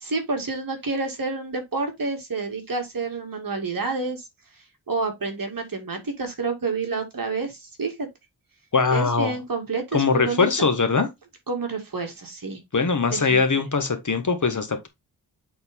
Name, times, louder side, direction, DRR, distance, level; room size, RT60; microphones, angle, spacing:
voice 1, 0.0-4.3 4.9-8.1 8.9-10.7 11.5-12.6 13.1-13.6, right 3 dB, 55° right, 2.4 m, -29 dB
voice 2, 8.7-9.4 9.9-11.1 12.7-14.9, left 4 dB, 50° left, 1.5 m, -21 dB
8.5 x 4.0 x 3.6 m
wide cardioid pair, 100°, 40 cm